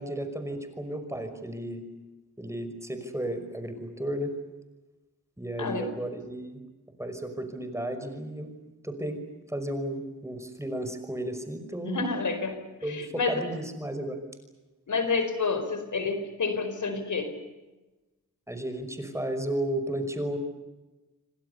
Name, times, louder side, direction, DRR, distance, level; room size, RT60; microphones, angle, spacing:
voice 1, 0.0-1.8 2.4-4.3 5.4-6.6 7.0-8.5 8.8-9.2 9.5-12.0 12.8-14.2 18.5-20.4, right 1 dB, 10° right, 7 dB, 5.6 m, -33 dB
voice 2, 5.6-6.0 11.8-13.5 14.9-17.3, left 4 dB, 70° left, 9 dB, 4.7 m, -29 dB
28.5 x 25.5 x 6.9 m, 1.1 s
wide cardioid pair, 90°, 31 cm